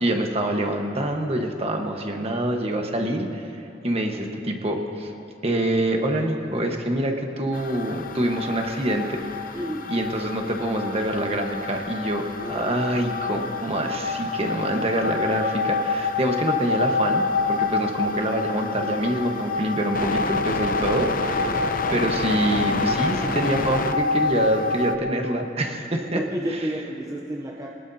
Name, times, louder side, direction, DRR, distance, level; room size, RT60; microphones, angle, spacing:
voice 1, 0.0-3.4 3.8-5.1 5.4-9.2 9.9-21.5 21.9-26.2, right 1 dB, 35° right, 3 dB, 1.4 m, -25 dB
sound 1, 7.5-25.0, left 3 dB, 50° left, 0.7 m, -27 dB
voice 2, 9.5-9.9 12.4-12.8 21.5-21.8 26.1-27.7, right 1 dB, 20° right, -1 dB, 0.8 m, -31 dB
23.5 x 19.0 x 2.8 m, 2.8 s
head